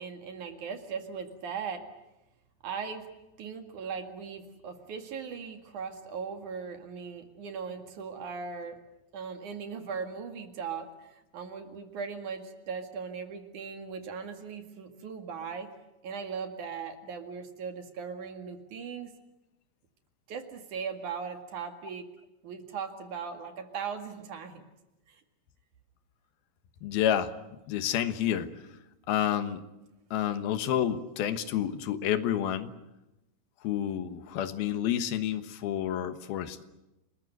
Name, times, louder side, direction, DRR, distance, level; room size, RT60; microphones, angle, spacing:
voice 1, 0.0-1.9 2.6-3.0 3.4-8.8 9.1-11.1 11.3-15.7 16.0-19.1 20.3-22.1 22.4-24.6 25.1-25.2, right 6 dB, 60° right, 6 dB, 3.3 m, -38 dB
voice 2, 26.8-27.3 27.7-28.5 29.1-29.6 30.1-32.7 33.6-36.6, left 10 dB, 85° left, 10 dB, 3.2 m, -29 dB
29.5 x 20.5 x 8.0 m, 0.95 s
omnidirectional pair, 4.3 m